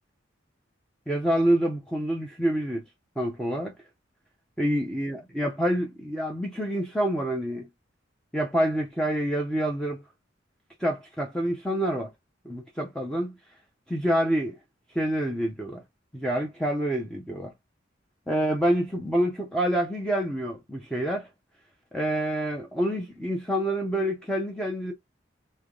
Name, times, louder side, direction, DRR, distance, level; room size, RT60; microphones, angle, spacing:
voice 1, 1.1-2.8 3.2-3.7 4.6-7.7 8.3-10.0 10.8-12.1 12.4-13.3 13.9-14.6 14.9-15.8 16.1-17.5 18.3-21.3 21.9-24.9, right 1 dB, 5° left, 0.7 m, -27 dB
3.3 x 3.2 x 3.8 m
head